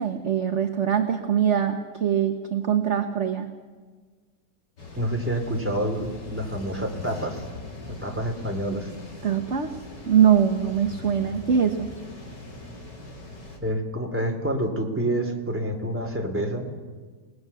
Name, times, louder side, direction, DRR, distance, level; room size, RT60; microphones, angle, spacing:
voice 1, 0.0-3.5 9.2-9.8 10.0-11.9, right 8 dB, 45° right, 6 dB, 1.4 m, -22 dB
sound 1, 4.8-13.6, left 3 dB, 80° left, 4.6 m, -41 dB
voice 2, 5.0-7.4 7.9-8.9 13.6-16.7, right 1 dB, 5° right, 2 dB, 3.3 m, -28 dB
29.0 x 19.5 x 7.1 m, 1.4 s
omnidirectional pair, 1.9 m